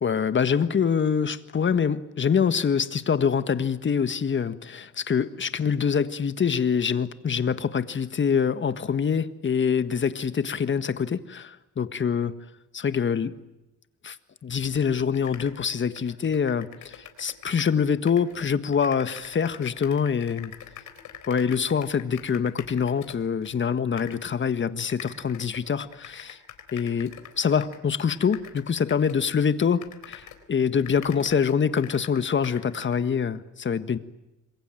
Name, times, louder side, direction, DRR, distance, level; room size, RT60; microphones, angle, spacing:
voice 1, 0.0-12.3 12.7-13.3 14.0-14.2 14.4-20.5 21.3-26.4 26.7-34.0, left 6 dB, 40° left, 1.6 m, -25 dB
sound 1, 14.7-14.8 15.1-17.8 18.1-23.5 24.0-24.3 24.8-30.5 30.8-33.0, left 10 dB, 80° left, 3.9 m, -44 dB
27.0 x 22.5 x 9.1 m
cardioid pair, 90°, 30 cm